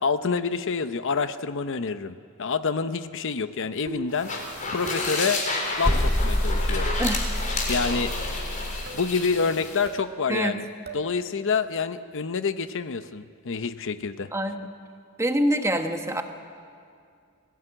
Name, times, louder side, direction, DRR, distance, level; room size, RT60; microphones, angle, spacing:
voice 1, 0.0-4.3 4.7-5.4 5.8-6.9 7.7-8.1 8.9-10.7 10.9-14.3, left 5 dB, 65° left, 11 dB, 0.7 m, -27 dB
sound 1, 3.9-4.3 4.9-5.3 5.9-6.2 6.9-7.2 7.9-8.2 8.9-9.1 9.9-10.1 10.9-11.1, equal, 45° right, 2.1 m, -38 dB
sound 2, 4.1-9.9, left 2 dB, 40° left, 3.8 m, -31 dB
sound 3, 5.8-8.9, left 1 dB, 10° left, 0.5 m, -26 dB
voice 2, 14.3-14.7 15.2-16.2, right 1 dB, 15° right, 6 dB, 1.3 m, -25 dB
21.0 x 16.0 x 8.9 m, 2.3 s
head